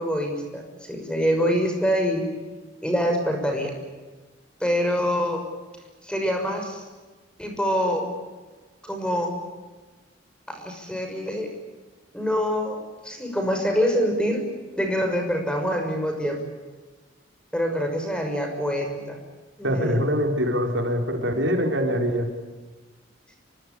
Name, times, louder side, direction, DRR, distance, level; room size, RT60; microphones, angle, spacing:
voice 1, 0.0-2.3 2.8-3.7 4.6-5.4 6.0-6.8 7.4-8.1 8.8-9.3 10.5-11.5 12.1-14.4 14.8-16.4 17.5-19.2 19.6-20.0, equal, 5° left, 4 dB, 6.1 m, -25 dB
voice 2, 19.6-22.3, equal, 70° right, 3 dB, 4.7 m, -24 dB
25.5 x 24.0 x 8.5 m, 1.3 s
head